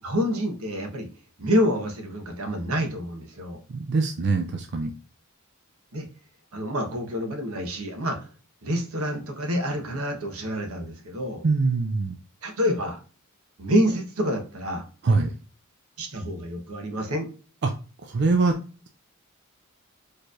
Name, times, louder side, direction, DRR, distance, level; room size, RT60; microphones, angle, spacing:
voice 1, 0.0-1.1 1.4-3.6 5.9-6.1 6.5-8.2 8.6-11.4 12.4-13.0 13.6-14.8 16.0-17.3, equal, 85° right, 3 dB, 1.1 m, -27 dB
voice 2, 3.7-4.9 11.4-12.2 15.0-15.3 17.6-17.7 18.0-18.6, right 3 dB, 55° right, 5 dB, 0.5 m, -23 dB
4.5 x 3.3 x 2.5 m, 0.37 s
head